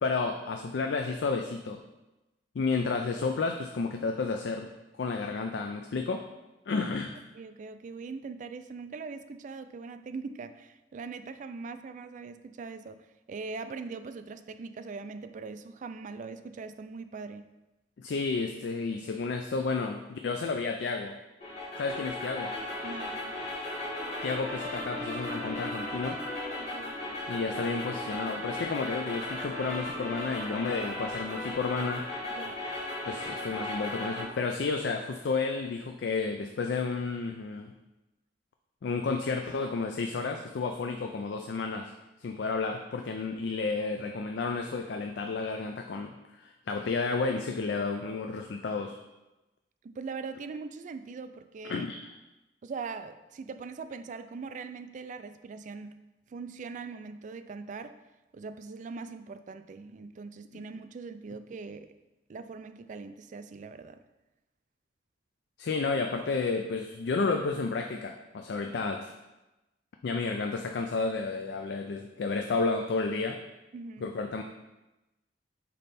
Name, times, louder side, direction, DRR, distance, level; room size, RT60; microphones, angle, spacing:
voice 1, 0.0-1.8 2.6-6.2 6.7-7.2 18.0-21.2 21.8-22.5 24.2-26.2 27.3-32.1 33.0-37.7 38.8-41.9 42.2-49.0 51.7-52.1 60.5-60.6 65.6-69.1 70.0-73.4 74.0-74.4, left 4 dB, 70° left, 4 dB, 0.4 m, -31 dB
voice 2, 7.3-17.5 22.8-23.3 26.6-26.9 32.4-32.6 49.8-51.9 52.6-56.0 56.3-58.0 58.3-61.9 62.3-64.0 73.7-74.1, right 4 dB, 45° right, 10 dB, 0.3 m, -41 dB
sound 1, 21.4-34.2, left 1 dB, 40° left, 1.9 m, -36 dB
sound 2, 21.9-36.2, left 1 dB, 25° left, 0.6 m, -48 dB
5.3 x 4.3 x 4.1 m, 1.0 s
head